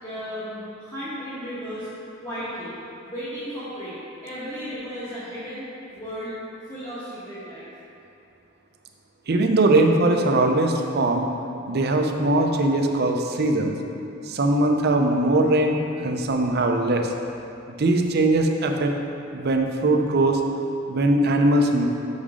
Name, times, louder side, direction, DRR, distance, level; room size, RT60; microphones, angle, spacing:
voice 1, 0.0-1.9 2.2-2.7 3.0-5.6 5.9-6.3 6.7-7.7, equal, 15° left, -13 dB, 1.4 m, -34 dB
voice 2, 9.3-11.3 11.7-13.8 14.3-17.1 17.7-18.9 19.3-20.4 20.9-21.8, right 2 dB, 50° right, 3 dB, 0.6 m, -21 dB
6.2 x 5.6 x 4.9 m, 2.7 s
head